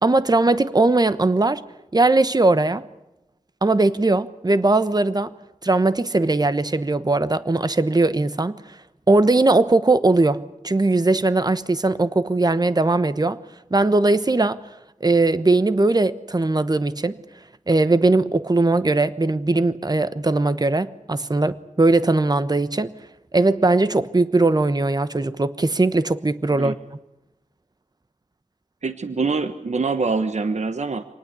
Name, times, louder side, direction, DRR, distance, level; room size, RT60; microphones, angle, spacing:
voice 1, 0.0-1.6 1.9-2.9 3.6-5.3 5.6-8.6 9.1-13.4 13.7-14.6 15.0-17.2 17.7-22.9 23.3-26.7, right 2 dB, 30° right, 1.1 m, -19 dB
voice 2, 28.8-31.0, right 4 dB, 65° right, 1.2 m, -24 dB
26.5 x 19.5 x 8.3 m
wide cardioid pair, 90°, 13 cm